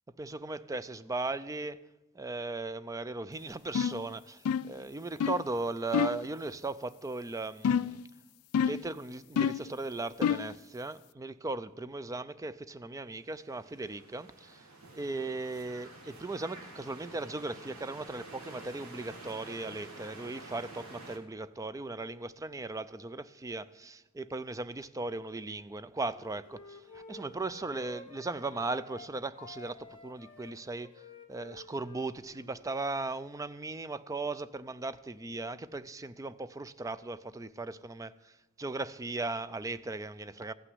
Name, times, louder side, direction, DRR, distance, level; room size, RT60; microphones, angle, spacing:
voice 1, 0.2-1.8 2.1-8.0 8.6-30.9 31.3-40.5, right 3 dB, 15° right, 0.3 m, -37 dB
sound 1, 3.8-4.0 4.5-4.8 5.2-5.5 5.9-6.3 7.6-8.0 8.5-8.9 9.4-9.7 10.2-10.5, left 7 dB, 90° left, 0.3 m, -28 dB
sound 2, 13.2-21.2, right 2 dB, 85° right, 1.9 m, -49 dB
Wind instrument woodwind instrument, 26.0-29.1 29.3-32.7, left 2 dB, 25° left, 1.5 m, -51 dB
15.0 x 6.0 x 9.5 m
head